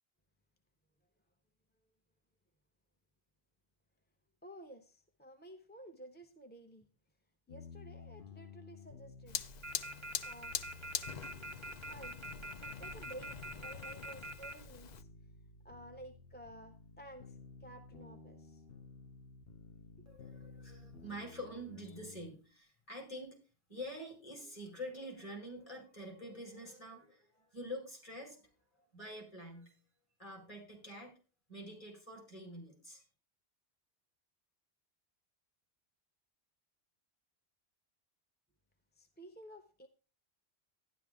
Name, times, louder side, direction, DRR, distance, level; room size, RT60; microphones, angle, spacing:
voice 1, 4.4-6.9 7.5-9.4 10.2-10.6 11.9-12.2 12.6-15.1 15.6-18.6 20.0-20.1 38.9-39.9, right 1 dB, 10° left, 5 dB, 0.7 m, -53 dB
sound 1, 7.5-22.3, left 4 dB, 65° left, 1.2 m, -55 dB
Fire, 9.3-15.0, left 7 dB, 50° left, 0.6 m, -44 dB
sound 2, 9.6-14.5, right 2 dB, 30° right, 0.8 m, -44 dB
voice 2, 20.0-23.4 23.7-28.5 28.9-29.7 30.2-31.1 31.5-33.0, equal, 30° left, -1 dB, 4.7 m, -47 dB
12.0 x 10.5 x 3.5 m, 0.35 s
omnidirectional pair, 1.1 m